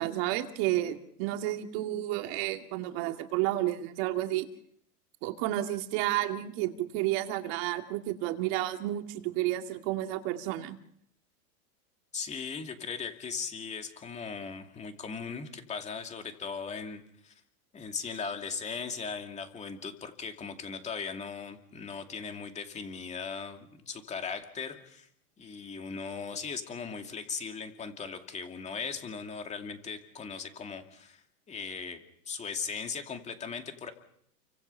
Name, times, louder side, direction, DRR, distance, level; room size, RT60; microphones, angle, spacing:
voice 1, 0.0-4.5 5.2-10.8, right 15 dB, 40° right, 5 dB, 2.4 m, -31 dB
voice 2, 12.1-17.3 17.7-25.1 25.4-32.0 32.3-33.9, left 5 dB, 15° left, 5 dB, 2.5 m, -38 dB
29.5 x 25.0 x 5.7 m, 0.71 s
supercardioid pair, 155°, 47 cm